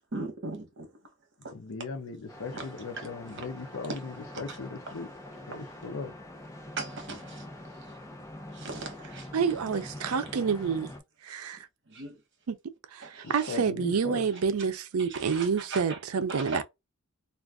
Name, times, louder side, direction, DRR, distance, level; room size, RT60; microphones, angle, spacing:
voice 1, 0.1-0.9 1.4-1.5 2.5-2.7 3.0-3.4 4.3-4.4 6.8-7.5 7.9-8.0 8.5-9.3 10.1-10.3 11.9-12.2 13.0-13.6 15.0-16.0 16.3-16.6, right 3 dB, 55° right, 1.1 m, -39 dB
voice 2, 1.4-5.1 5.4-6.2 13.2-14.3, left 4 dB, 65° left, 0.6 m, -38 dB
sound 1, 2.3-11.0, left 1 dB, 15° left, 0.6 m, -45 dB
voice 3, 9.3-10.9 11.2-11.7 12.5-12.6 12.9-16.6, right 6 dB, 85° right, 0.5 m, -28 dB
2.4 x 2.4 x 3.5 m
head